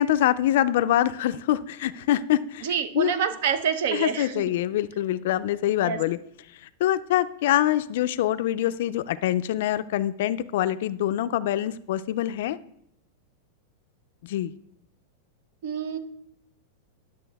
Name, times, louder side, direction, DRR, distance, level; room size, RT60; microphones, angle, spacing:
voice 1, 0.0-2.7 2.9-3.1 3.9-6.2 6.8-12.6 14.2-14.5, left 12 dB, 60° left, 14 dB, 0.4 m, -24 dB
voice 2, 2.6-4.4 5.8-6.0 15.6-16.0, right 7 dB, 60° right, 11 dB, 0.8 m, -27 dB
11.0 x 6.8 x 3.4 m, 0.73 s
supercardioid pair, 165°, 0 cm